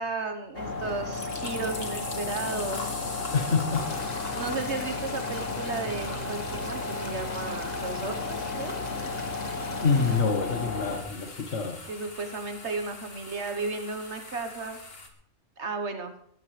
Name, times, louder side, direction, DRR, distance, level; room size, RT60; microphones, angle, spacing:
voice 1, 0.0-3.0 4.3-8.7 11.8-14.8 15.6-16.1, right 3 dB, 65° right, 6 dB, 1.5 m, -34 dB
sound 1, 0.5-11.0, left 3 dB, 90° left, 2.9 m, -34 dB
sound 2, 0.8-15.1, left 2 dB, 55° left, 2.3 m, -42 dB
voice 2, 3.3-3.9 9.8-11.9, left 5 dB, 70° left, 3 dB, 1.7 m, -26 dB
sound 3, 3.7-10.2, left 3 dB, 35° left, 1.4 m, -42 dB
20.0 x 14.0 x 3.3 m, 0.67 s
omnidirectional pair, 1.3 m